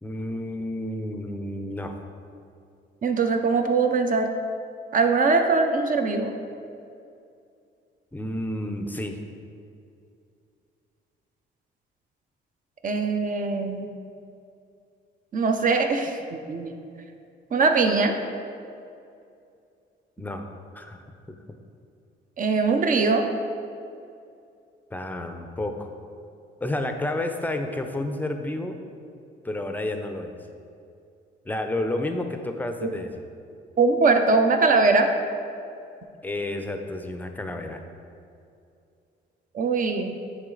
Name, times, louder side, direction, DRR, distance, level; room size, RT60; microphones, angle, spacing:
voice 1, 0.0-1.9 8.1-9.2 20.2-20.5 20.7-21.4 24.9-25.9 26.6-28.8 29.4-30.3 31.5-33.2 36.2-37.8, left 1 dB, 10° left, 5 dB, 0.5 m, -30 dB
voice 2, 3.0-4.3 4.9-6.3 12.8-13.9 15.3-16.7 17.5-18.1 22.4-23.3 32.8-32.9 33.8-35.1 39.5-40.2, right 4 dB, 40° right, 5 dB, 0.6 m, -21 dB
8.8 x 3.3 x 3.9 m, 2.5 s
cardioid pair, 90°, 20 cm